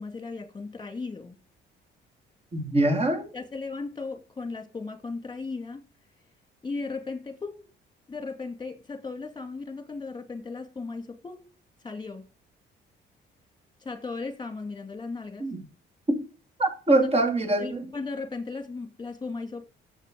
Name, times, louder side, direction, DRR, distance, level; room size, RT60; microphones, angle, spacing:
voice 1, 0.0-1.4 3.3-5.8 6.6-7.7 8.1-11.5 11.8-12.3 13.8-15.4 16.9-17.1 17.6-19.7, left 4 dB, 20° left, 2.5 m, -36 dB
voice 2, 2.5-3.3 15.4-15.6 16.1-16.2 16.6-17.9, right 2 dB, 30° right, 2.9 m, -24 dB
8.0 x 7.4 x 7.7 m
cardioid pair, 90°, 20 cm